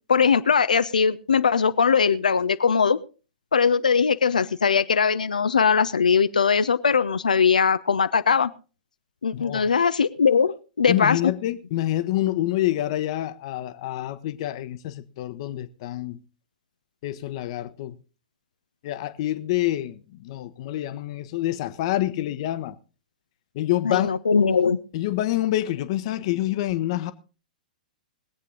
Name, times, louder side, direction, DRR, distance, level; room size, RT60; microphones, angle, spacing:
voice 1, 0.1-3.0 3.5-8.5 9.2-11.3 23.8-24.8, left 6 dB, 70° left, 0.6 m, -20 dB
voice 2, 9.3-9.6 10.9-16.2 17.0-17.9 18.8-22.7 23.5-24.1 24.9-27.1, left 14 dB, 45° left, 1.0 m, -27 dB
21.5 x 8.2 x 3.8 m
figure-of-eight pair, 110°, 4 cm